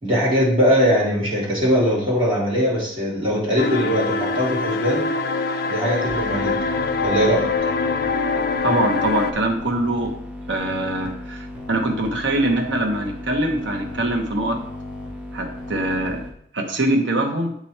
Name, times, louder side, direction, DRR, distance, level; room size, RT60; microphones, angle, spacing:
voice 1, 0.0-5.1 5.7-6.6 7.0-7.4, equal, 30° right, -8 dB, 2.5 m, -20 dB
sound 1, 3.6-9.3, left 4 dB, 55° left, 0.4 m, -24 dB
sound 2, 6.1-16.3, left 1 dB, 5° right, 0.9 m, -35 dB
voice 2, 8.6-10.1 10.5-14.6 15.3-16.2 16.5-17.5, right 1 dB, 75° right, 3 dB, 1.0 m, -23 dB
7.7 x 3.0 x 4.3 m, 0.68 s
head